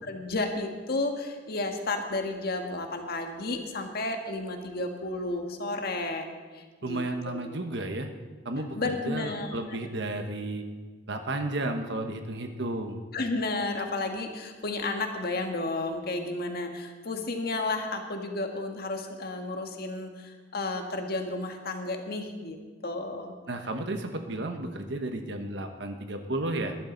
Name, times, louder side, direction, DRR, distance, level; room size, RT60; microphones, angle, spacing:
voice 1, 0.1-6.2 6.5-7.0 8.7-9.5 13.1-22.6 22.8-23.4, left 2 dB, 55° left, 4 dB, 1.7 m, -32 dB
voice 2, 6.8-8.1 8.4-10.6 11.1-13.0 23.5-26.8, right 2 dB, 65° right, 5 dB, 1.2 m, -33 dB
21.0 x 12.0 x 4.0 m, 1.4 s
head